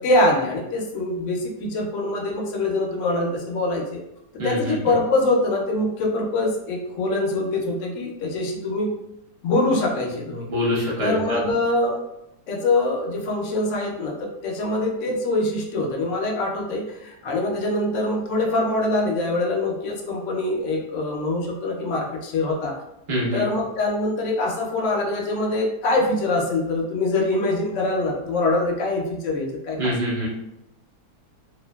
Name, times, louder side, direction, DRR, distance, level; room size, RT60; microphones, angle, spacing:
voice 1, 0.0-4.0 4.4-8.9 9.4-10.5 11.0-12.0 12.5-22.7 23.3-29.9, left 2 dB, 75° left, 0 dB, 0.7 m, -24 dB
voice 2, 4.4-4.7 10.5-11.4 23.1-23.4 29.8-30.3, equal, 35° right, -7 dB, 0.5 m, -24 dB
2.8 x 2.5 x 2.2 m, 0.86 s
omnidirectional pair, 1.8 m